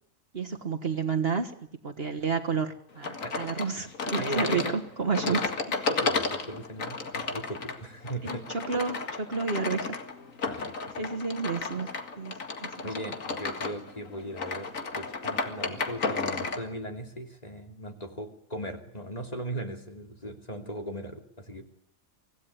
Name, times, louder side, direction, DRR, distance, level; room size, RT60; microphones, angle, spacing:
voice 1, 0.3-1.5 1.8-5.4 8.2-9.9 11.0-11.9 12.2-13.1, right 5 dB, 45° right, 5 dB, 1.6 m, -31 dB
sound 1, 3.0-16.6, left 4 dB, 70° left, 2.3 m, -33 dB
voice 2, 4.2-4.7 5.2-5.4 5.9-8.4 8.7-8.8 10.5-11.1 12.8-14.7 15.0-21.6, right 1 dB, 30° left, 4 dB, 2.9 m, -38 dB
25.0 x 17.0 x 9.8 m, 0.74 s
omnidirectional pair, 1.4 m